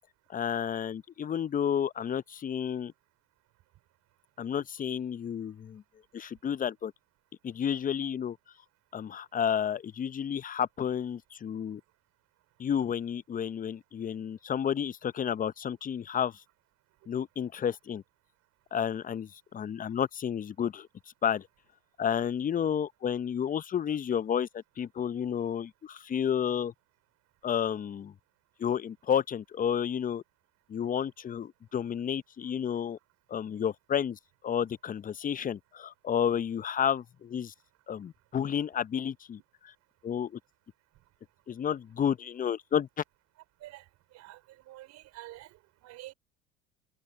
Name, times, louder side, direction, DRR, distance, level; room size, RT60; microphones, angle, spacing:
voice 1, 0.3-2.9 4.4-5.8 6.1-6.9 7.4-8.4 8.9-11.8 12.6-16.4 17.1-18.0 18.7-20.9 21.2-21.5 22.0-26.7 27.4-28.1 28.6-30.2 30.7-33.0 33.3-37.5 37.9-39.7 40.0-40.4 41.5-42.9, left 8 dB, 25° left, 0.8 m, -31 dB
voice 2, 44.1-45.6 45.8-46.1, right 16 dB, 55° right, 4.0 m, -48 dB
hypercardioid pair, 75°, 33 cm